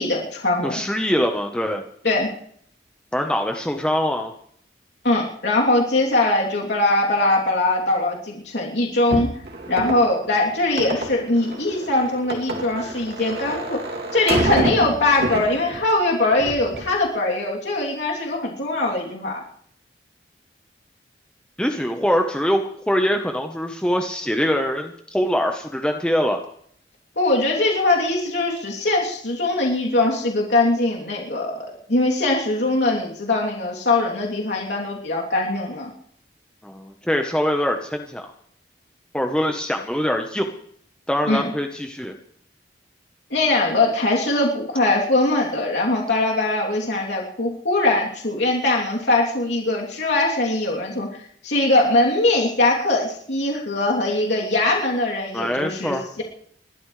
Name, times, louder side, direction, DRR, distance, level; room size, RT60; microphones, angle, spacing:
voice 1, 0.0-0.8 2.0-2.3 5.0-9.3 9.7-13.8 14.1-19.4 27.2-35.9 41.3-41.5 43.3-56.2, left 2 dB, 75° left, -2 dB, 3.1 m, -21 dB
voice 2, 0.6-1.8 3.1-4.3 21.6-26.4 36.6-38.3 39.1-40.5 41.1-42.1 55.3-56.0, equal, 5° left, 3 dB, 1.0 m, -23 dB
sound 1, 9.1-15.9 16.3-16.9, right 1 dB, 60° right, 2.8 m, -27 dB
29.5 x 13.0 x 3.3 m, 0.63 s
head